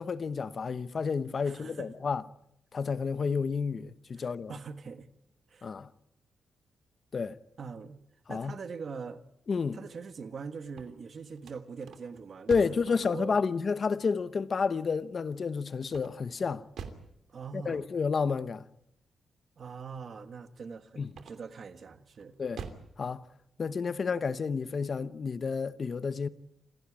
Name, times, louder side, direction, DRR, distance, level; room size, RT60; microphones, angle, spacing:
voice 1, 0.0-2.2 2.7-4.5 5.6-5.9 7.1-7.4 8.3-8.6 9.5-9.8 12.5-16.6 17.5-18.7 21.0-21.1 22.4-22.6 23.0-23.2 23.6-26.3, left 5 dB, 35° left, 0.9 m, -30 dB
voice 2, 1.4-1.9 4.2-5.1 5.5-5.7 7.6-8.0 8.3-9.2 9.7-13.4 17.3-17.9 19.6-22.4, right 5 dB, 40° right, 1.4 m, -42 dB
sound 1, 10.6-12.9 15.9-17.2 21.1-21.6 22.1-22.9, right 6 dB, 70° right, 2.8 m, -45 dB
27.5 x 16.5 x 8.7 m
wide cardioid pair, 180°, 0 cm